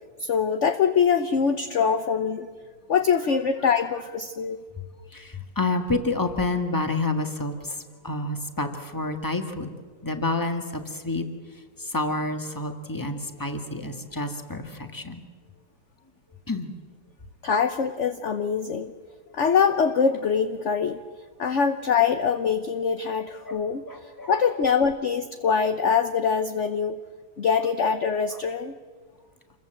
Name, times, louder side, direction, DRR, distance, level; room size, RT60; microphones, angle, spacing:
voice 1, 0.2-2.5 2.9-4.6 17.4-18.9 19.3-21.0 21.4-27.0 27.4-28.7, left 6 dB, 50° left, 8 dB, 1.1 m, -23 dB
voice 2, 5.1-9.8 10.0-11.2 11.8-15.2 16.5-16.7 23.5-23.6 23.9-24.7, left 2 dB, 10° left, 5 dB, 1.8 m, -29 dB
27.5 x 22.0 x 7.8 m, 1.5 s
omnidirectional pair, 1.9 m